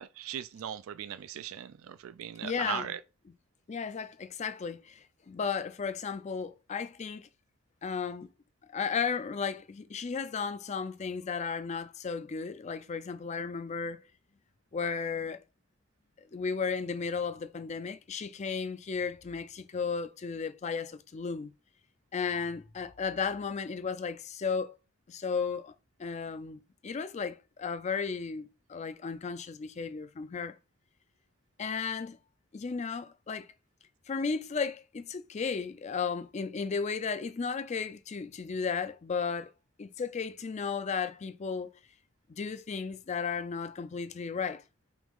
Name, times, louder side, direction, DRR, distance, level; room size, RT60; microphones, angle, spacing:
voice 1, 0.0-3.0, right 10 dB, 75° right, 0.3 m, -39 dB
voice 2, 2.4-2.9 3.7-7.3 7.8-8.3 8.7-14.0 14.7-15.4 16.3-21.5 22.1-24.8 25.1-25.7 26.0-30.6 31.6-32.2 32.5-33.5 34.1-39.5 39.8-41.7 42.3-44.6, left 5 dB, 35° left, 0.4 m, -34 dB
6.1 x 2.4 x 3.6 m
head